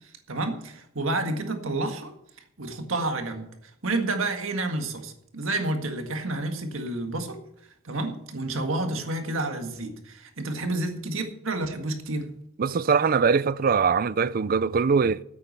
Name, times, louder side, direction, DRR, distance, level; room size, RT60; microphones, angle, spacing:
voice 1, 0.3-2.1 2.6-3.5 3.8-7.4 7.8-12.3, right 2 dB, 70° right, 1.8 m, -29 dB
voice 2, 12.6-15.2, right 5 dB, 45° right, 0.4 m, -22 dB
9.7 x 8.3 x 8.0 m
head